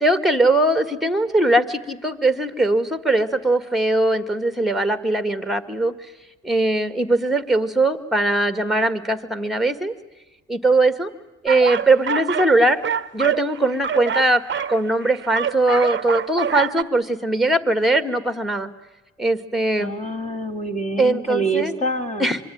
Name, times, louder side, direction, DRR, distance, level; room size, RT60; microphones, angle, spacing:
voice 1, 0.0-5.9 6.4-9.9 10.5-11.1 11.4-12.8 13.1-14.4 14.7-18.7 19.2-19.9 21.0-21.7 22.2-22.4, right 2 dB, ahead, 11 dB, 1.8 m, -20 dB
sound 1, 11.5-12.5 12.8-16.8, right 7 dB, 40° right, 0.9 m, -26 dB
voice 2, 19.8-22.3, right 2 dB, 25° left, 5 dB, 2.6 m, -26 dB
24.5 x 24.5 x 9.4 m, 1.0 s
cardioid pair, 90°, 30 cm